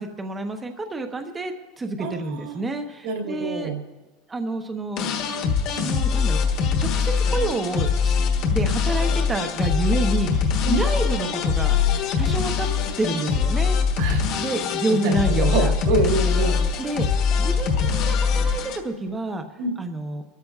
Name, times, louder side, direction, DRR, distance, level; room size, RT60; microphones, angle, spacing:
voice 1, 0.0-3.7 4.3-5.1 5.7-8.1 8.5-11.8 12.2-12.7 13.0-13.8 14.4-15.7 16.8-19.4 19.8-20.2, right 2 dB, 10° right, 5 dB, 0.7 m, -29 dB
voice 2, 2.0-2.6 3.0-3.8 10.6-10.8 14.0-14.3 14.9-16.6 19.6-19.7, right 3 dB, 65° right, -1 dB, 3.1 m, -25 dB
sound 1, 5.0-18.8, left 6 dB, 40° left, 1.2 m, -22 dB
24.5 x 13.0 x 2.4 m, 1.1 s
supercardioid pair, 180°, 0 cm